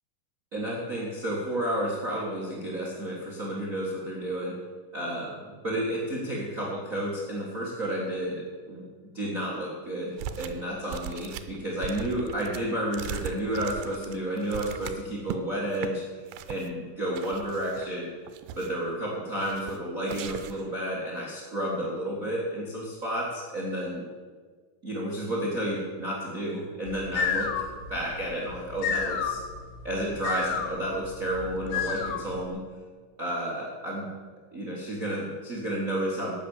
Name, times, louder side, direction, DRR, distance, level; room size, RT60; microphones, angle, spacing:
voice 1, 0.5-4.6 4.9-8.9 9.1-18.1 18.5-24.0 24.8-27.5 27.9-29.4 29.8-32.6 33.2-34.1 34.5-36.3, right 1 dB, 55° right, -3 dB, 0.9 m, -31 dB
sound 1, 10.2-10.6 10.9-15.4 15.7-15.9 16.3-16.7 17.2-17.9 18.3-18.9 19.4-19.8 20.1-20.7, right 10 dB, 85° right, 2.6 m, -39 dB
sound 2, 26.9-32.5, left 6 dB, 75° left, 2.7 m, -32 dB
12.0 x 8.5 x 7.3 m, 1.5 s
omnidirectional pair, 4.7 m